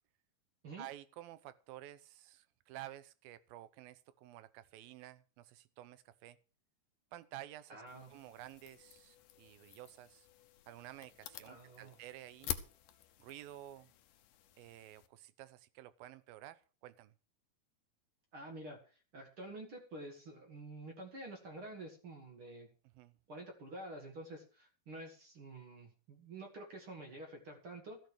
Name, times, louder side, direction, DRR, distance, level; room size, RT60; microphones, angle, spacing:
voice 1, 0.8-6.4 7.1-7.8 8.1-10.3 10.7-12.6 13.2-13.9 14.6-17.1 22.8-23.2, right 14 dB, 80° right, 15 dB, 2.4 m, -52 dB
voice 2, 7.7-8.1 11.5-12.0 18.3-22.7 23.3-28.0, right 2 dB, 45° right, 3 dB, 2.0 m, -49 dB
sound 1, 7.9-15.1, left 12 dB, 70° left, 2.2 m, -49 dB
14.5 x 6.9 x 6.3 m, 0.38 s
omnidirectional pair, 4.4 m